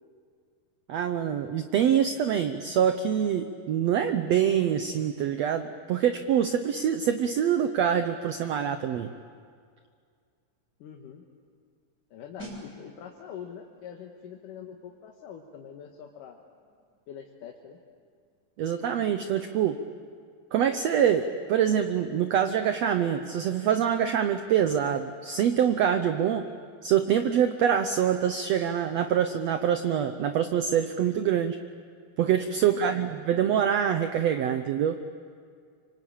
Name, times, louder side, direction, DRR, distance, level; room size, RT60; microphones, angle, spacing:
voice 1, 0.9-9.1 18.6-19.8 20.5-26.5 26.8-31.6 32.2-35.0, right 9 dB, 75° right, 8 dB, 1.6 m, -25 dB
voice 2, 10.8-11.2 12.1-16.4 17.1-17.8 32.6-33.1, left 8 dB, 75° left, 1 dB, 2.9 m, -44 dB
sound 1, 12.4-22.9 23.2-23.4, equal, 20° right, 7.4 m, -53 dB
26.0 x 25.0 x 8.7 m, 2.1 s
omnidirectional pair, 3.9 m